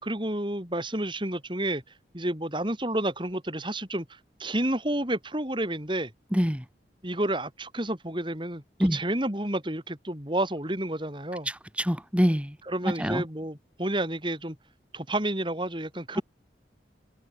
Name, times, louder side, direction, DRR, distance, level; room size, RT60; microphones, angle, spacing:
voice 1, 0.0-1.8 2.1-6.1 7.0-11.5 12.7-14.6 14.9-16.2, right 1 dB, 30° right, 4.6 m, -30 dB
voice 2, 6.3-6.6 8.8-9.0 11.5-12.6 13.0-13.2 16.1-16.2, equal, 5° right, 4.3 m, -25 dB
head